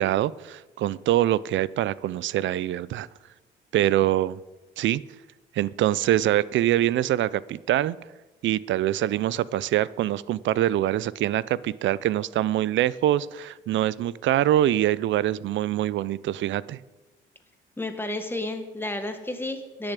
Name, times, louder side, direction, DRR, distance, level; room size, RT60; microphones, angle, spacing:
voice 1, 0.0-3.1 3.7-4.4 4.8-5.0 5.5-8.0 8.4-16.8, right 13 dB, 70° right, 20 dB, 0.5 m, -24 dB
voice 2, 17.8-19.9, left 1 dB, 10° left, 6 dB, 1.7 m, -31 dB
11.5 x 7.0 x 8.3 m, 1.2 s
cardioid pair, 90°, 20 cm